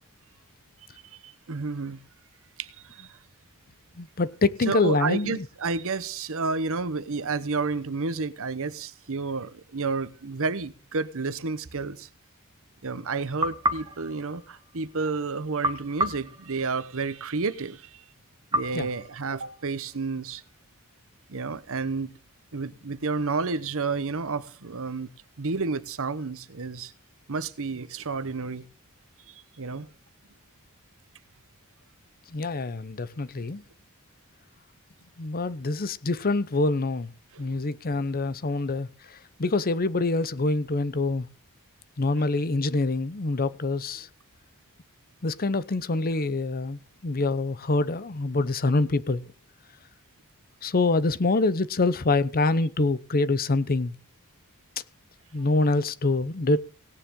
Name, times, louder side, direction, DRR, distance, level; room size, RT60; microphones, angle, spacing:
voice 1, 1.2-2.0 2.6-3.2 4.7-12.1 12.8-18.0 18.5-20.4 21.3-22.1 22.5-25.1 25.4-26.9 27.3-28.6 29.3-29.9 37.3-37.5 38.5-38.6 42.2-42.3, right 4 dB, 65° right, 1.0 m, -31 dB
voice 2, 4.0-5.4 18.7-18.9 32.3-33.6 35.2-37.1 37.4-41.3 42.0-44.1 45.2-49.2 50.6-54.0 55.3-56.6, left 2 dB, 40° left, 0.8 m, -25 dB
sound 1, 13.4-15.0 15.6-17.2 18.5-19.9, right 1 dB, 20° right, 1.0 m, -32 dB
17.5 x 9.8 x 3.8 m
head